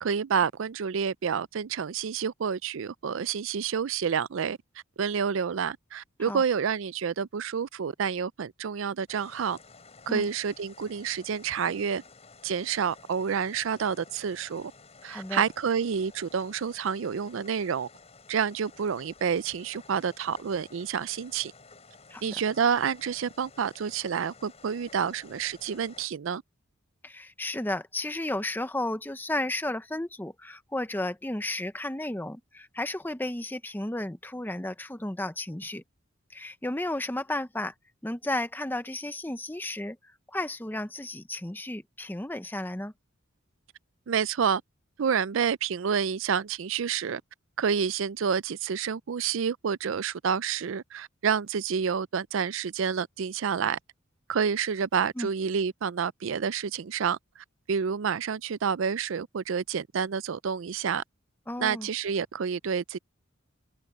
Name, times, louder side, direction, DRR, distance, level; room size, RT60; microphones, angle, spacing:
voice 1, 0.0-4.6 5.0-9.6 10.1-12.0 12.4-14.7 15.0-17.9 18.3-21.5 22.2-26.4 44.1-44.6 45.0-47.2 47.6-53.8 54.3-61.0 61.6-63.0, right 7 dB, 70° right, 0.4 m, -29 dB
sound 1, 9.1-26.1, left 4 dB, 30° left, 6.2 m, -53 dB
voice 2, 15.1-15.4 22.1-22.4 27.0-35.8 36.3-37.7 38.0-40.0 40.3-42.9 55.2-55.3 61.5-61.9, left 1 dB, 10° left, 0.7 m, -33 dB
head